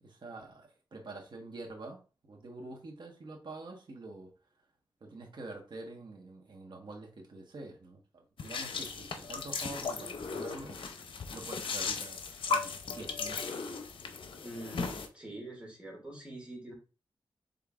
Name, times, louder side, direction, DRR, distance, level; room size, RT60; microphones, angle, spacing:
voice 1, 0.0-4.3 5.0-10.8 11.3-12.2 12.5-13.4, right 2 dB, 60° right, 1 dB, 1.3 m, -46 dB
sound 1, 8.4-15.1, left 4 dB, 85° left, 0.6 m, -36 dB
voice 2, 14.4-16.7, right 1 dB, 15° right, -1 dB, 2.3 m, -45 dB
5.3 x 3.7 x 2.4 m, 0.33 s
wide cardioid pair, 95°, 9 cm